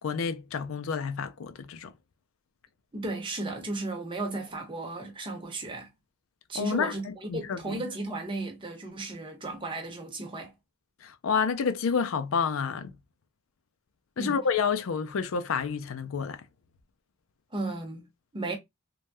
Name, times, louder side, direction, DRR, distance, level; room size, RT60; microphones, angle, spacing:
voice 1, 0.0-1.9 6.6-7.7 11.0-13.0 14.2-16.5, left 6 dB, 75° left, 0.4 m, -29 dB
voice 2, 2.9-5.9 6.5-10.5 14.2-14.4 17.5-18.1 18.3-18.6, right 2 dB, 25° right, 0.9 m, -35 dB
3.2 x 2.3 x 2.5 m
head